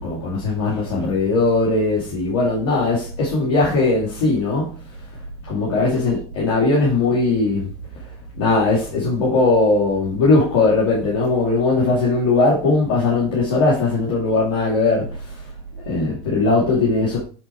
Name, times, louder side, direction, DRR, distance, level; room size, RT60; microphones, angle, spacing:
voice 1, 0.0-4.8 5.4-7.7 8.3-15.4 15.9-17.2, left 3 dB, 90° left, 2.6 m, -19 dB
9.0 x 4.1 x 4.5 m
supercardioid pair, 95°, 13 cm